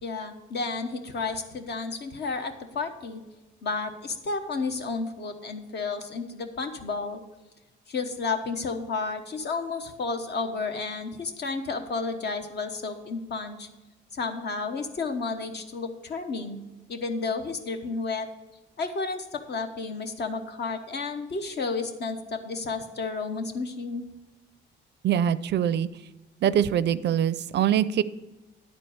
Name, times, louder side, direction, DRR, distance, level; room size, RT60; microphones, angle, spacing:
voice 1, 0.0-3.2 3.6-7.2 7.9-13.7 14.1-16.6 16.9-18.3 18.8-24.0, left 4 dB, 60° left, 6 dB, 1.1 m, -32 dB
voice 2, 25.0-25.9 26.4-28.0, right 9 dB, 60° right, 16 dB, 0.4 m, -23 dB
10.5 x 4.4 x 7.0 m, 1.0 s
cardioid pair, 90°, 20 cm